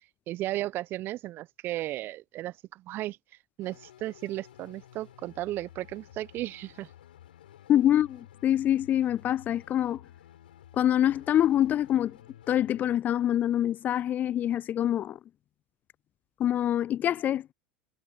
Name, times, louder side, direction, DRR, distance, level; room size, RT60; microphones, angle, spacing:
voice 1, 0.3-3.2 3.6-6.9, right 15 dB, 45° right, 1.0 m, -35 dB
sound 1, 3.6-13.0, left 11 dB, 75° left, 3.9 m, -53 dB
voice 2, 7.7-10.0 10.7-12.2 12.5-15.2 16.4-17.5, left 11 dB, 35° left, 0.3 m, -25 dB
figure-of-eight pair, 80°, 5 cm